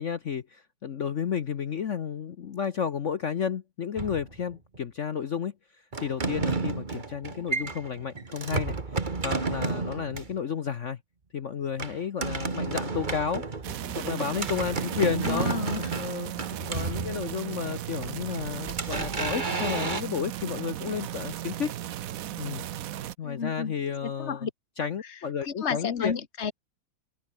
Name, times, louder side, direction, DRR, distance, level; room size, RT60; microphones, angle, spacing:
voice 1, 0.0-5.5 6.0-11.0 11.3-13.4 14.0-15.5 16.0-16.3 16.7-21.7 22.4-22.7 23.2-24.5 24.8-26.1, left 7 dB, 60° left, 0.8 m, -32 dB
sound 1, 4.0-4.8 5.9-10.4 11.8-17.6 18.0-20.0, right 4 dB, 25° right, 1.6 m, -32 dB
sound 2, 13.6-23.2, right 12 dB, 80° right, 0.7 m, -36 dB
voice 2, 15.2-16.0 23.2-23.7 24.0-24.5 25.4-26.5, left 6 dB, 35° left, 1.9 m, -32 dB
omnidirectional pair, 2.3 m